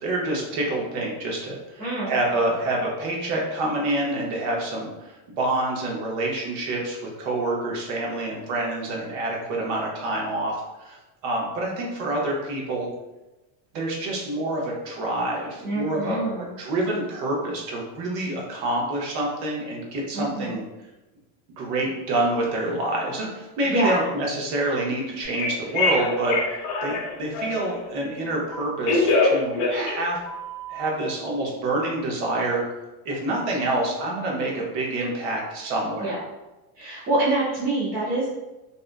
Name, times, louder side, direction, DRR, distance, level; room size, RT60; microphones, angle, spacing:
voice 1, 0.0-11.0 11.2-12.9 13.7-16.2 16.6-20.6 21.6-30.2 30.7-32.6 33.0-36.1 36.8-37.1, right 2 dB, 55° right, -2 dB, 0.9 m, -27 dB
voice 2, 1.8-2.1 15.6-16.5 20.1-20.6 23.6-24.1 36.0-36.2 36.8-38.3, right 2 dB, 20° right, -9 dB, 0.5 m, -26 dB
Telephone, 25.2-27.7 28.5-30.9, left 3 dB, 55° left, 0.8 m, -24 dB
2.7 x 2.3 x 2.4 m, 1.0 s
supercardioid pair, 150°, 47 cm